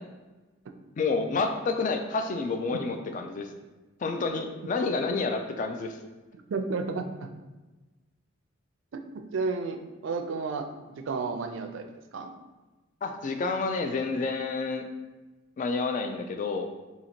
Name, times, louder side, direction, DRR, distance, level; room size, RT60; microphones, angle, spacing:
voice 1, 1.0-3.5 4.0-6.0 13.0-14.8 15.6-16.7, left 4 dB, 40° left, 6 dB, 0.3 m, -29 dB
voice 2, 6.3-7.3 8.9-11.9 12.1-12.3, right 4 dB, 75° right, 6 dB, 0.4 m, -32 dB
2.8 x 2.8 x 4.3 m, 1.2 s
head